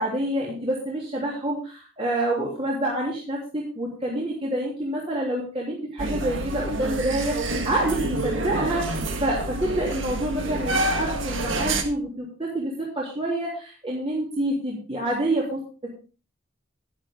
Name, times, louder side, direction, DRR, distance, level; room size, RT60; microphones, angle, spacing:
voice 1, 0.0-15.9, right 1 dB, 30° right, -5 dB, 3.2 m, -27 dB
sound 1, 6.0-11.8, right 2 dB, 75° right, 1.7 m, -28 dB
11.0 x 11.0 x 3.7 m, 0.35 s
head